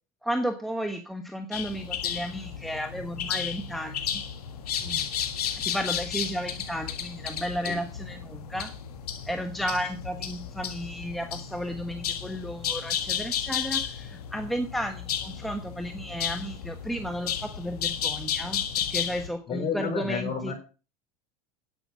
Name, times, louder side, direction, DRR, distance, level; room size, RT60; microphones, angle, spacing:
voice 1, 0.2-4.2 5.5-8.7 9.3-20.5, equal, ahead, 5 dB, 1.3 m, -33 dB
sound 1, 1.5-19.3, left 8 dB, 85° left, 1.7 m, -33 dB
voice 2, 4.8-5.1 7.7-7.8 19.5-20.5, left 5 dB, 35° left, 5 dB, 5.5 m, -31 dB
9.9 x 8.9 x 6.2 m, 0.35 s
hypercardioid pair, 100°, 19 cm